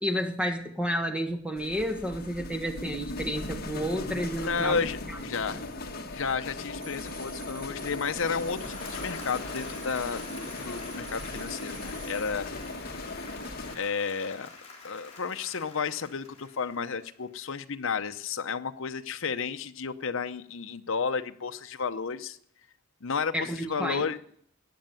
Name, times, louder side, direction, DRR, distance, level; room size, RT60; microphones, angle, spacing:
voice 1, 0.0-4.8 5.5-5.6 23.3-24.1, equal, 5° right, 1.5 m, -31 dB
sound 1, 1.6-13.8, left 2 dB, 45° left, 1.5 m, -38 dB
voice 2, 4.4-5.0 5.2-5.6 6.1-12.5 13.8-14.5 14.8-22.4 23.0-24.2, left 5 dB, 65° left, 0.7 m, -32 dB
sound 2, 6.8-12.3, right 4 dB, 35° right, 2.5 m, -49 dB
Applause / Crowd, 8.1-17.3, left 4 dB, 30° left, 4.0 m, -46 dB
13.0 x 9.0 x 9.0 m
head